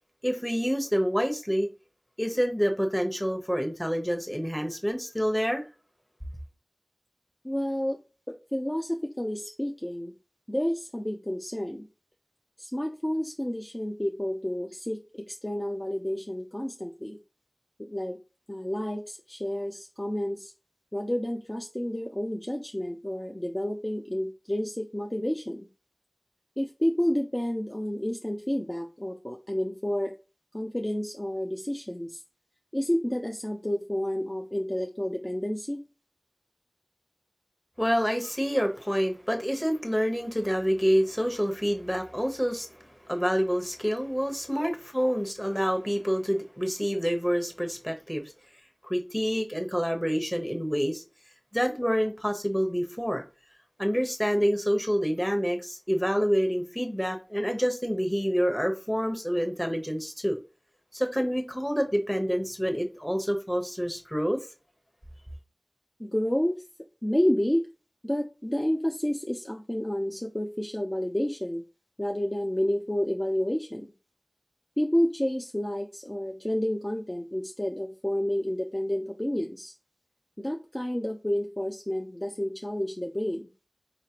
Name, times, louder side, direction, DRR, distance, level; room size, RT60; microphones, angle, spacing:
voice 1, 0.2-1.7 2.2-5.6 37.8-48.3 48.8-51.0 51.5-53.2 53.8-60.4 60.9-64.5, equal, 10° left, 1.1 m, -27 dB
voice 2, 7.4-8.0 8.3-10.1 10.5-11.9 12.6-17.2 17.8-18.2 18.5-20.5 20.9-25.7 26.6-30.1 30.5-32.2 32.7-35.9 44.6-44.7 45.4-45.5 66.0-66.6 67.0-67.7 68.0-71.6 72.0-73.9 74.8-79.7 80.4-83.5, equal, 25° left, 0.5 m, -30 dB
4.9 x 3.2 x 2.9 m
wide cardioid pair, 40°, 0 cm